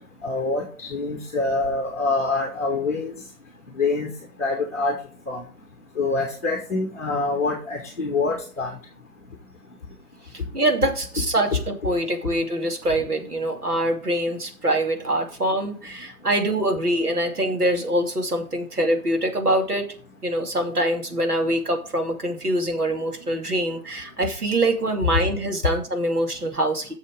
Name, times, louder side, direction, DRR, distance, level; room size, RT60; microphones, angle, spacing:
voice 1, 0.2-3.1 3.8-4.1 4.4-4.9 5.3-5.4 6.0-8.8, left 3 dB, 10° left, 1 dB, 1.2 m, -25 dB
voice 2, 10.5-19.9 20.2-26.9, right 1 dB, 80° right, 3 dB, 2.7 m, -24 dB
7.2 x 6.5 x 4.9 m, 0.39 s
figure-of-eight pair, 155°, 45 cm